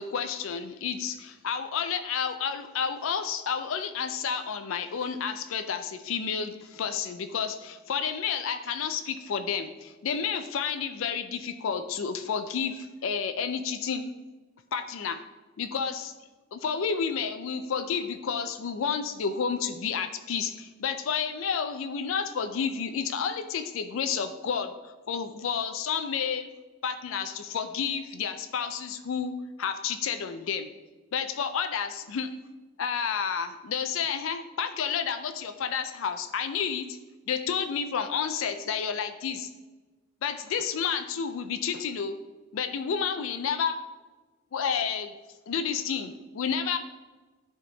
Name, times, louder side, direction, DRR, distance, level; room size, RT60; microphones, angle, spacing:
voice 1, 0.0-14.0 14.7-15.2 15.6-16.1 16.5-26.5 26.8-29.3 29.6-30.7 31.1-32.3 32.8-37.0 37.3-39.5 40.2-42.2 42.5-43.8 44.5-45.1 45.5-46.8, left 6 dB, 70° left, 9 dB, 0.4 m, -30 dB
10.0 x 3.6 x 3.9 m, 1.3 s
head